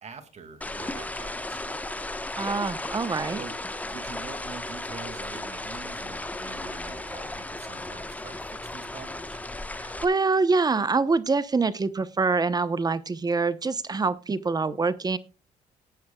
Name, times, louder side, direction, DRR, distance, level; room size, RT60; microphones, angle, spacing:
voice 1, 0.0-2.0 3.4-9.4, right 5 dB, 45° right, 2.2 m, -45 dB
sound 1, 0.6-10.0, left 2 dB, 10° left, 1.1 m, -35 dB
voice 2, 2.4-3.4 9.8-15.2, right 4 dB, 25° right, 0.9 m, -25 dB
18.5 x 9.3 x 2.3 m
cardioid pair, 90°, 15 cm